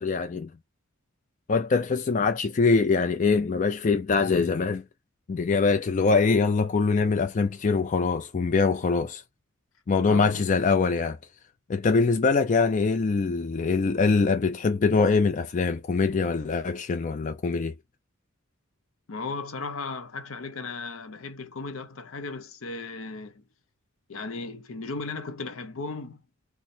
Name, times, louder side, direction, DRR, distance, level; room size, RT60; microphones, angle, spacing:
voice 1, 0.0-0.5 1.5-4.8 5.3-9.2 9.9-11.2 11.7-17.7, left 4 dB, 35° left, 0.4 m, -23 dB
voice 2, 10.1-10.5 19.1-23.4 24.1-26.2, left 3 dB, 70° left, 0.7 m, -36 dB
3.1 x 2.0 x 4.2 m
head